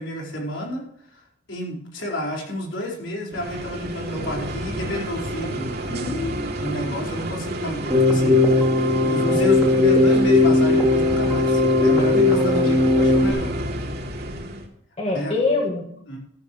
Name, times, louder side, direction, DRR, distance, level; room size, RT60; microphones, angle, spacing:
voice 1, 0.0-6.1 6.6-8.4 9.0-13.5 15.1-15.4 16.1-16.2, left 1 dB, 65° left, -2 dB, 4.6 m, -31 dB
sound 1, 3.3-14.7, right 1 dB, 55° right, 2.6 m, -30 dB
voice 2, 5.9-6.7 12.1-12.7 15.0-15.9, left 3 dB, 30° left, 0 dB, 1.7 m, -26 dB
Keyboard (musical), 7.9-13.3, left 2 dB, 5° right, 3.2 m, -18 dB
14.5 x 14.0 x 3.1 m, 0.70 s
head